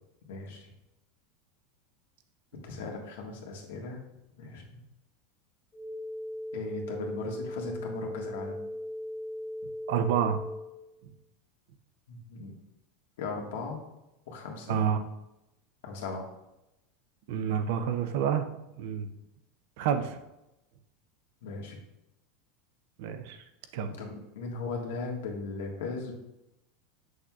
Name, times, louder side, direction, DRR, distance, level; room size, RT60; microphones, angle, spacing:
voice 1, 0.3-0.7 2.6-4.0 4.4-4.8 6.5-8.6 12.1-12.5 13.2-13.8 14.3-14.8 15.8-16.3 21.4-21.8 24.0-26.2, left 3 dB, 90° left, 0 dB, 1.6 m, -37 dB
sound 1, 5.7-10.7, left 1 dB, 10° left, 1.4 m, -38 dB
voice 2, 9.9-10.4 14.7-15.0 17.3-18.5 18.8-19.1 19.8-20.2 23.0-23.4 23.7-23.9, right 8 dB, 55° right, 9 dB, 0.6 m, -28 dB
7.6 x 6.3 x 2.4 m, 0.91 s
supercardioid pair, 175°, 0 cm